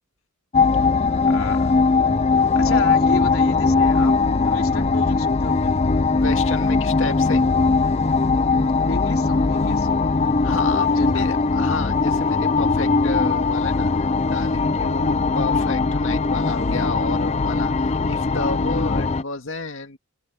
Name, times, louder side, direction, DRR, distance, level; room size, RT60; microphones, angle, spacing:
sound 1, 0.5-19.2, left 4 dB, 30° left, 0.5 m, -20 dB
voice 1, 1.3-1.7 2.5-5.7 8.9-10.1 10.9-11.3, left 3 dB, 85° left, 3.8 m, -33 dB
voice 2, 6.2-7.4 10.4-20.0, left 3 dB, 65° left, 2.2 m, -31 dB
head